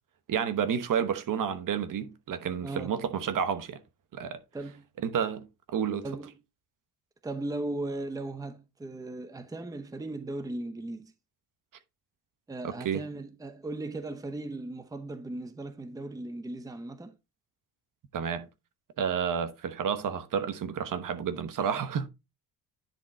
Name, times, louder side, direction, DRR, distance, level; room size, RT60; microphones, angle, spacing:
voice 1, 0.3-3.8 4.1-4.4 5.0-5.5 5.7-6.1 12.6-13.0 18.1-18.5 19.0-22.1, right 7 dB, 55° right, 1.1 m, -30 dB
voice 2, 2.6-2.9 4.5-4.9 6.0-6.3 7.2-11.1 12.5-17.2, right 2 dB, 10° right, 0.8 m, -37 dB
10.0 x 3.8 x 4.2 m
cardioid pair, 110°, 39 cm